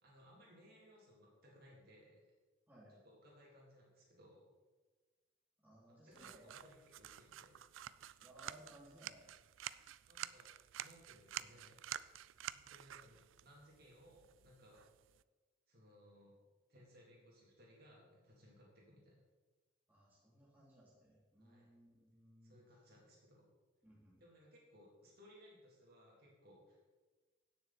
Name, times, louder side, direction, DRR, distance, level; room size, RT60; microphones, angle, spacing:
voice 1, 0.0-2.3 2.9-4.5 5.8-7.6 10.1-10.5 10.8-11.9 12.5-14.9 15.7-16.4 16.7-19.2 21.4-21.7 22.4-23.5 24.2-26.8, equal, 50° right, -4 dB, 3.4 m, -63 dB
voice 2, 5.6-6.6 8.2-9.3 19.9-22.6 23.8-24.2, right 1 dB, 10° right, -7 dB, 3.2 m, -62 dB
sound 1, 6.1-15.2, right 12 dB, 80° right, 0.4 m, -50 dB
16.5 x 6.8 x 4.3 m, 1.3 s
head